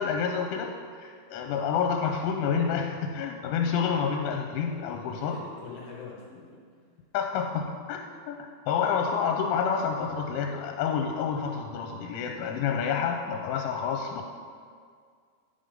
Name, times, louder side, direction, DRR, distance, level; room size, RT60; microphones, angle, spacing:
voice 1, 0.0-5.4 7.1-8.0 8.3-8.4 8.7-14.3, left 6 dB, 85° left, 3 dB, 3.0 m, -28 dB
voice 2, 4.7-6.6, left 5 dB, 70° left, -4 dB, 2.5 m, -45 dB
12.5 x 5.5 x 5.1 m, 2.1 s
omnidirectional pair, 5.6 m